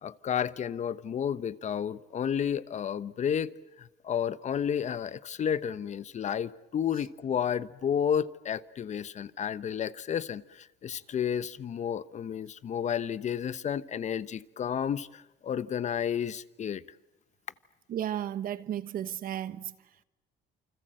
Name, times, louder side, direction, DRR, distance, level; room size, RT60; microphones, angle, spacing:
voice 1, 0.0-3.5 3.8-16.8, left 8 dB, 45° left, 1.0 m, -31 dB
voice 2, 17.9-19.7, right 10 dB, 60° right, 1.3 m, -34 dB
28.5 x 26.0 x 7.8 m
cardioid pair, 110°, 17 cm